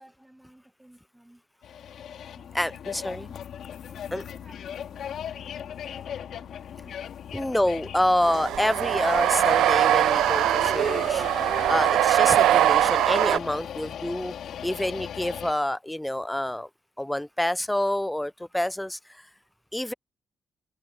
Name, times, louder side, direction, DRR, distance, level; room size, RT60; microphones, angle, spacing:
voice 1, 0.0-1.4 2.3-3.5 3.9-7.6 19.3-19.4, right 1 dB, 10° right, 7.1 m, -54 dB
sound 1, 1.6-15.5, left 9 dB, 70° left, 2.0 m, -37 dB
voice 2, 2.5-3.2 4.1-4.2 7.3-11.3 11.7-14.3 14.6-16.7 17.0-19.2 19.7-19.9, left 1 dB, 10° left, 0.3 m, -27 dB
sound 2, 8.2-13.4, right 12 dB, 80° right, 0.3 m, -22 dB
supercardioid pair, 65°, 0 cm